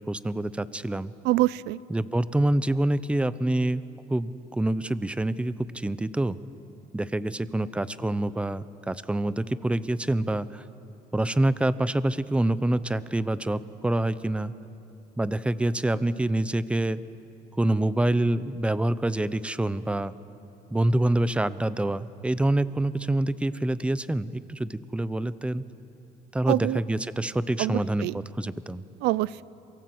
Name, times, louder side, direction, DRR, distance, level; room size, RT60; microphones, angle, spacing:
voice 1, 0.0-1.1 1.9-3.8 4.1-6.4 6.9-10.6 11.1-14.5 15.2-17.0 17.6-20.1 20.7-25.6 26.3-28.8, right 1 dB, 5° right, 15 dB, 0.7 m, -26 dB
voice 2, 1.2-1.8 26.5-26.8 27.6-28.2 29.0-29.4, right 17 dB, 90° right, 21 dB, 0.5 m, -25 dB
27.5 x 23.0 x 7.9 m, 2.8 s
cardioid pair, 110°, 17 cm